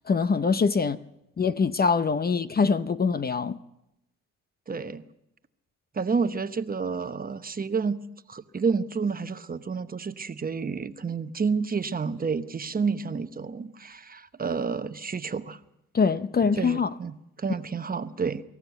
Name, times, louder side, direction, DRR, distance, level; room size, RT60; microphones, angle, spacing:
voice 1, 0.1-1.0 1.4-3.6 15.9-16.9, left 5 dB, 30° left, 0.7 m, -23 dB
voice 2, 4.7-5.0 5.9-8.0 8.3-15.6 16.5-18.4, right 5 dB, 30° right, 1.0 m, -30 dB
23.5 x 14.5 x 8.2 m
cardioid pair, 90°, 30 cm